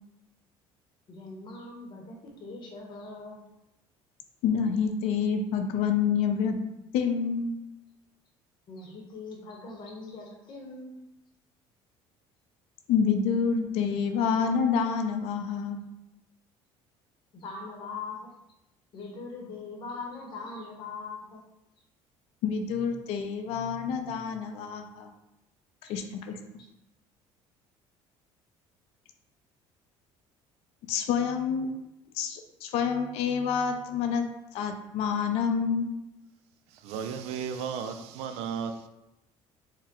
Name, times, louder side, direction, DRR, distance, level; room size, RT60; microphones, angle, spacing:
voice 1, 1.1-3.4 8.7-11.0 17.3-18.3 18.9-21.4 25.8-25.9 26.6-26.7, left 3 dB, 45° left, 0 dB, 0.9 m, -41 dB
voice 2, 4.4-6.6 6.9-7.5 12.9-15.8 22.4-25.1 25.9-26.3 30.9-31.7 32.2-34.3 34.5-35.9, left 6 dB, 70° left, 5 dB, 0.5 m, -27 dB
voice 3, 36.8-38.9, right 7 dB, 75° right, 8 dB, 0.4 m, -34 dB
4.6 x 2.1 x 3.6 m, 0.91 s
cardioid pair, 140°, 11 cm